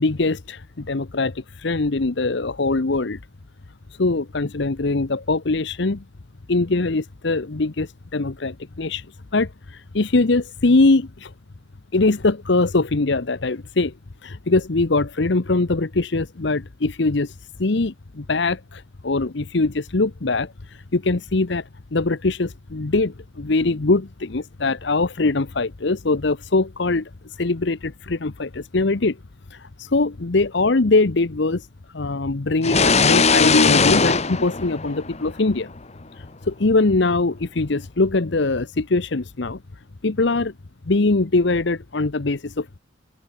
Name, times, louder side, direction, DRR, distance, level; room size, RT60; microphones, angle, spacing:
voice 1, 0.0-3.2 4.0-6.0 6.5-9.1 9.3-11.3 11.9-13.9 14.2-17.3 17.6-20.5 20.9-27.1 27.4-29.2 29.5-31.7 31.9-35.7 36.5-39.6 40.0-40.5 40.9-42.8, left 3 dB, 60° left, 0.9 m, -22 dB
sound 1, 32.6-35.4, left 4 dB, 35° left, 1.5 m, -19 dB
head